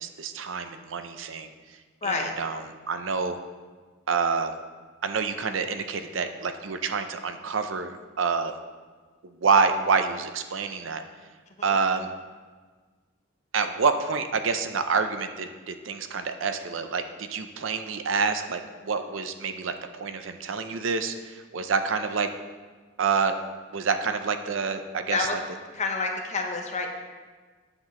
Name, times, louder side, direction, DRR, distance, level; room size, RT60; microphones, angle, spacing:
voice 1, 0.0-1.5 2.0-2.6 2.9-3.4 4.1-4.5 5.0-8.6 9.2-11.0 11.6-12.1 13.5-19.7 20.0-22.3 23.0-23.3 23.7-25.2, right 5 dB, 70° right, 8 dB, 0.6 m, -27 dB
voice 2, 2.0-2.3 11.6-11.8 25.1-25.4 25.7-26.9, left 4 dB, 35° left, 3 dB, 1.0 m, -28 dB
9.0 x 7.6 x 3.7 m, 1.4 s
head